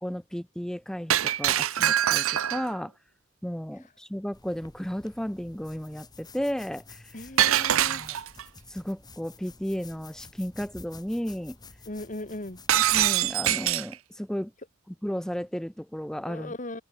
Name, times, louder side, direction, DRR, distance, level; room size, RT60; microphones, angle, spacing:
voice 1, 0.0-2.9 3.4-7.0 7.7-8.2 8.7-11.6 12.9-14.5 15.0-16.5, equal, 5° left, 0.5 m, -34 dB
Shatter, 1.1-2.8 7.4-8.4 12.7-13.9, right 11 dB, 85° right, 0.6 m, -24 dB
sound 1, 4.3-13.6, left 3 dB, 20° left, 2.0 m, -51 dB
voice 2, 7.1-8.1 11.9-12.6 16.2-16.8, left 1 dB, 40° left, 2.6 m, -38 dB
open air
head